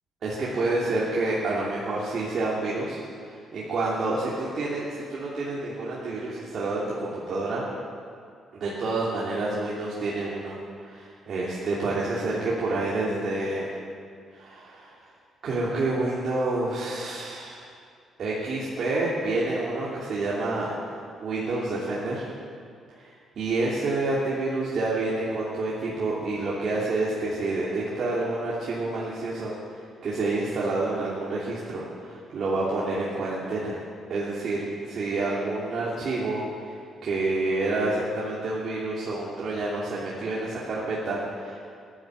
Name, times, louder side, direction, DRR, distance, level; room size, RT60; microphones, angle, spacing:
voice 1, 0.2-3.0 3.3-7.6 8.5-10.6 10.8-13.7 14.3-14.9 15.4-17.6 18.2-20.7 21.2-22.3 23.0-29.5 30.0-33.8 34.1-36.8 37.0-41.6, right 2 dB, 55° right, -7 dB, 3.1 m, -28 dB
14.5 x 11.5 x 7.8 m, 2.2 s
cardioid pair, 90°, 0 cm